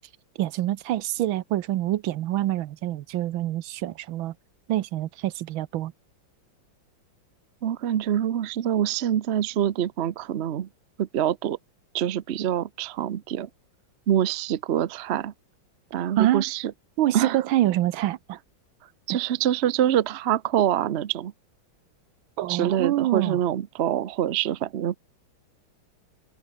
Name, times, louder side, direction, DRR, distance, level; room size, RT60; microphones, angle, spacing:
voice 1, 0.4-4.3 4.7-5.9 16.2-16.4 17.0-18.4 19.1-19.2 22.4-23.4, right 14 dB, 85° right, 1.6 m, -26 dB
voice 2, 7.6-10.7 11.0-11.6 11.9-13.5 14.1-15.3 15.9-16.7 17.1-17.4 19.1-21.3 22.5-25.0, right 10 dB, 65° right, 0.6 m, -25 dB
open air
omnidirectional pair, 2.1 m